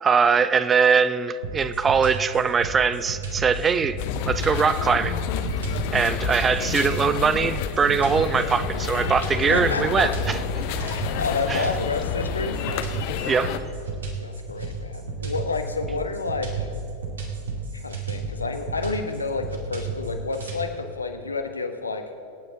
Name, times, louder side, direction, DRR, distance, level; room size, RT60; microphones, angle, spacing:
voice 1, 0.0-4.0 4.3-5.2 5.9-10.4 11.5-11.7 13.2-13.5, right 6 dB, 20° right, 14 dB, 0.5 m, -21 dB
sound 1, 1.4-20.6, right 4 dB, 65° right, 2.4 m, -33 dB
sound 2, 4.0-13.6, left 7 dB, 45° left, 0.8 m, -29 dB
voice 2, 9.3-10.1 10.8-12.6 14.2-16.7 17.8-22.0, left 4 dB, 80° left, 6 dB, 1.2 m, -29 dB
26.5 x 9.1 x 3.9 m, 2.8 s
figure-of-eight pair, 90°, 0 cm